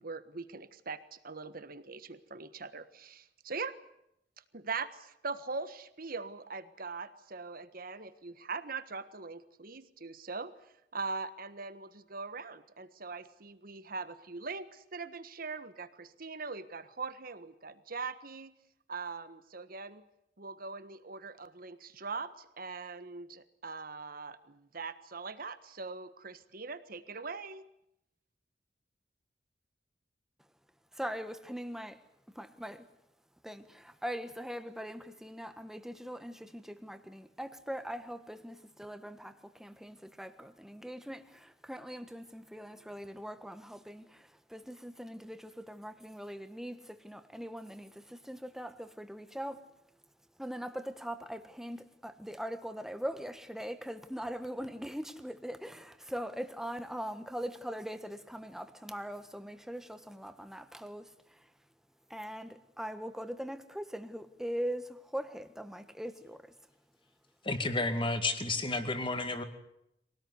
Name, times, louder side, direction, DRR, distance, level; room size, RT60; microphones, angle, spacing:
voice 1, 0.0-3.7 4.5-10.5 10.9-18.5 18.9-20.0 20.4-27.6, right 4 dB, 55° right, 12 dB, 1.5 m, -41 dB
voice 2, 30.9-32.0 32.3-32.9 33.4-49.6 50.4-61.5 62.1-66.5, equal, 5° right, 10 dB, 1.4 m, -41 dB
voice 3, 67.4-69.4, left 2 dB, 30° left, 9 dB, 2.2 m, -31 dB
23.5 x 18.0 x 9.7 m, 0.80 s
head